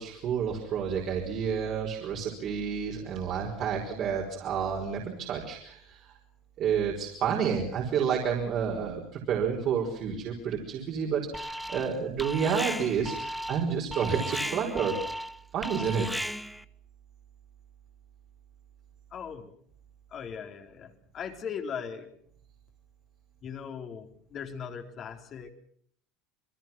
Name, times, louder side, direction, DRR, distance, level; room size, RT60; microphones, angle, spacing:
voice 1, 0.0-6.1 6.6-15.0 15.5-16.1, right 7 dB, 45° right, 0 dB, 5.3 m, -30 dB
Alarm, 11.3-11.9 12.2-16.6, equal, ahead, 1.1 m, -35 dB
voice 2, 19.1-19.5 20.1-22.1 23.4-25.5, left 7 dB, 40° left, 5 dB, 4.0 m, -39 dB
28.0 x 22.0 x 6.1 m, 0.63 s
supercardioid pair, 125°, 0 cm